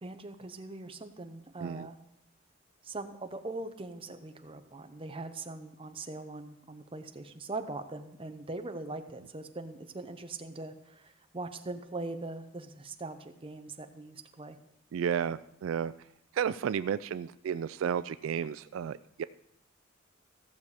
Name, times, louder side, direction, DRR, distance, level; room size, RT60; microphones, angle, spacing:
voice 1, 0.0-2.0 2.8-14.6, right 2 dB, 25° right, 7 dB, 0.8 m, -41 dB
voice 2, 14.9-15.9 16.3-19.2, right 8 dB, 80° right, 15 dB, 0.3 m, -32 dB
15.0 x 6.9 x 4.8 m, 0.79 s
head